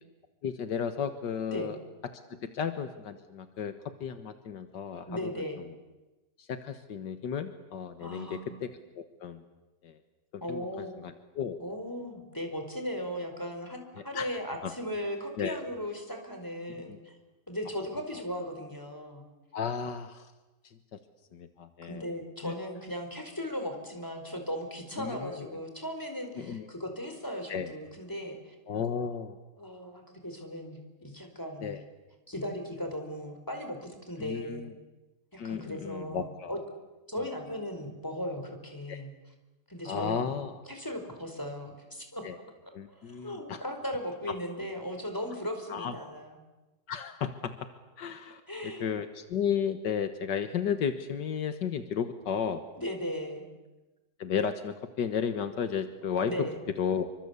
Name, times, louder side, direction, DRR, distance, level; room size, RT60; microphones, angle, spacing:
voice 1, 0.4-1.8 2.3-3.7 4.0-5.3 6.4-8.7 9.0-9.4 9.8-10.0 10.5-11.6 14.1-14.3 14.6-14.7 15.4-15.6 16.9-17.0 19.5-20.3 20.9-21.0 21.3-22.1 22.4-22.5 25.0-25.6 26.4-26.7 27.5-27.7 28.7-29.4 31.6-31.8 34.2-34.7 35.4-36.6 38.9-39.0 39.9-40.5 42.2-42.4 42.7-43.6 45.7-45.9 46.9-47.5 48.0-52.6 54.2-56.3 56.8-57.1, left 7 dB, 85° left, 9 dB, 2.0 m, -33 dB
voice 2, 5.1-5.6 8.0-8.5 10.4-11.0 11.6-17.1 17.5-19.3 21.9-28.5 29.6-31.8 32.3-34.7 35.3-36.6 37.1-39.1 39.7-40.4 40.6-46.4 48.5-48.9 52.8-53.4 56.3-56.6, equal, 10° left, 5 dB, 4.8 m, -37 dB
28.5 x 24.5 x 8.3 m, 1.1 s
omnidirectional pair, 1.8 m